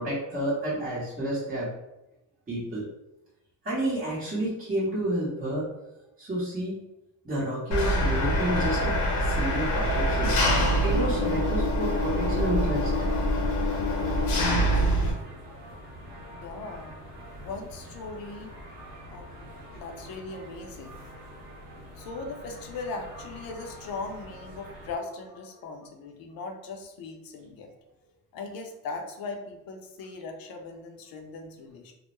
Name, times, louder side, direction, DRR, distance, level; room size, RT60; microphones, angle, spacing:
voice 1, 0.0-1.7 2.5-2.8 3.6-5.7 6.2-6.8 7.2-10.4 10.8-12.9, right 1 dB, 20° right, -8 dB, 0.8 m, -30 dB
Engine, 7.7-15.1, equal, 85° left, 0.9 m, -25 dB
sound 1, 9.3-25.0, equal, 55° right, 0.9 m, -45 dB
voice 2, 16.4-17.0 17.4-18.5 19.1-21.0 22.0-27.7 28.3-31.9, left 3 dB, 60° left, 3 dB, 0.6 m, -39 dB
2.2 x 2.0 x 2.9 m, 0.93 s
cardioid pair, 100°, 39 cm